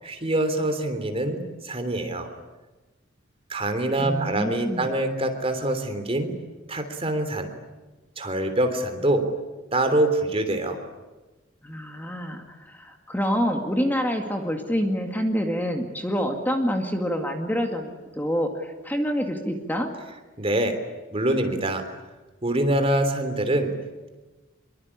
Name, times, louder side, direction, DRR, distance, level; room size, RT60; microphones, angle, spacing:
voice 1, 0.0-2.3 3.5-6.3 6.7-7.5 8.2-9.3 9.7-10.8 20.4-20.8 21.1-21.8 22.4-23.7, right 1 dB, 30° right, 7 dB, 3.3 m, -25 dB
voice 2, 4.0-4.9 11.6-19.9, equal, 10° left, 3 dB, 2.2 m, -27 dB
26.0 x 23.5 x 9.9 m, 1.2 s
head